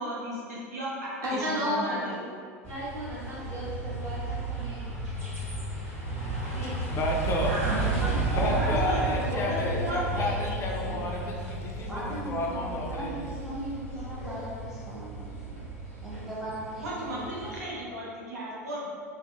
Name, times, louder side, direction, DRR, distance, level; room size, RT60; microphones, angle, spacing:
voice 1, 0.0-2.3 7.4-11.0 16.8-18.9, right 1 dB, 80° right, -6 dB, 0.6 m, -35 dB
voice 2, 1.2-2.1 2.7-4.8 6.5-6.7, equal, 45° right, -9 dB, 1.1 m, -33 dB
sound 1, 2.6-17.6, right 2 dB, 30° right, 1.4 m, -33 dB
voice 3, 6.6-7.5 8.3-13.3, left 2 dB, 30° left, -1 dB, 0.3 m, -31 dB
voice 4, 7.6-9.8 11.9-15.6 16.0-17.8 18.1-18.2, right 1 dB, 5° right, -8 dB, 0.8 m, -38 dB
2.6 x 2.1 x 2.5 m, 2.2 s
hypercardioid pair, 85°, 8 cm